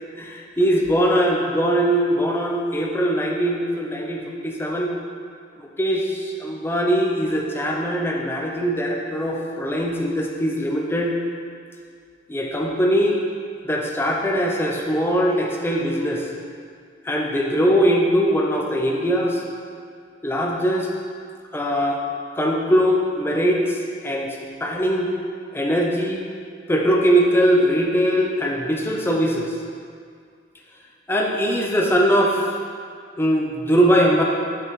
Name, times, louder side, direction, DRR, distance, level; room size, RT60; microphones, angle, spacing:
voice 1, 0.2-4.9 5.8-11.1 12.3-13.2 13.6-16.2 17.1-19.4 20.2-20.9 21.5-22.0 22.4-23.6 24.0-24.3 24.6-25.1 25.5-26.2 26.7-29.5 31.1-32.5 33.2-34.2, equal, 15° left, -1 dB, 0.5 m, -21 dB
5.7 x 5.4 x 3.1 m, 2.2 s
head